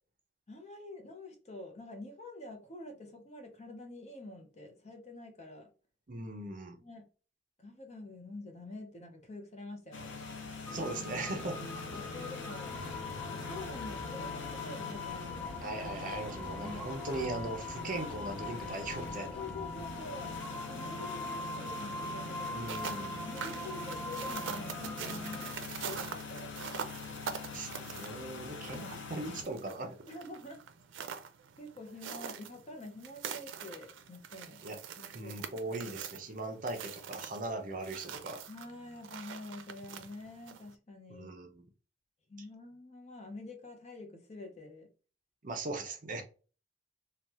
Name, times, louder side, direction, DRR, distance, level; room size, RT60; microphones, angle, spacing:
voice 1, 0.5-5.7 6.8-7.0 7.6-10.1 11.9-12.8 13.3-15.6 16.6-16.8 19.4-20.4 20.6-22.6 23.2-26.6 28.7-29.0 30.1-30.7 31.0-31.2 31.6-34.6 35.0-35.3 38.5-41.3 42.3-44.9, left 2 dB, 35° left, 0.7 m, -47 dB
voice 2, 6.1-6.8 10.7-11.6 15.6-19.3 22.5-23.3 27.5-28.8 29.1-30.0 34.6-34.8 35.1-38.4 41.1-41.6 45.4-46.2, right 2 dB, 45° right, 0.7 m, -39 dB
sound 1, 9.9-29.4, left 4 dB, 85° left, 0.7 m, -44 dB
sound 2, 10.7-25.5, left 2 dB, 5° left, 0.4 m, -42 dB
sound 3, 22.5-40.7, right 7 dB, 90° right, 0.5 m, -45 dB
3.3 x 2.3 x 2.8 m
head